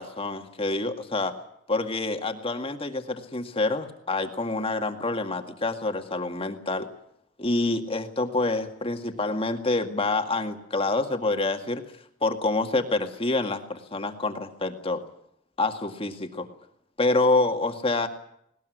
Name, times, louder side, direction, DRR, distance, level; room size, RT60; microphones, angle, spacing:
voice 1, 0.0-1.3 1.7-6.9 7.4-11.8 12.2-15.0 15.6-16.5 17.0-18.1, left 2 dB, 30° left, 5 dB, 2.0 m, -27 dB
19.5 x 19.5 x 9.3 m, 0.73 s
head